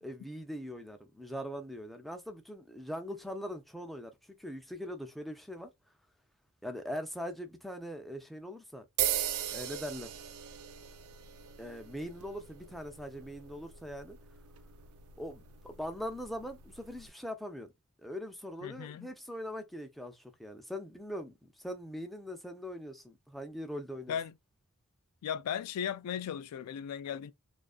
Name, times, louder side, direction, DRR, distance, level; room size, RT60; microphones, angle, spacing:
voice 1, 0.0-4.1 4.4-5.7 6.6-8.9 9.5-10.1 11.6-14.2 15.2-17.7 18.0-24.2, equal, ahead, 0.4 m, -41 dB
sound 1, 9.0-17.1, right 11 dB, 70° right, 0.3 m, -39 dB
voice 2, 18.6-19.1 24.1-24.3 25.2-27.3, left 8 dB, 85° left, 0.3 m, -36 dB
2.4 x 2.4 x 2.3 m
head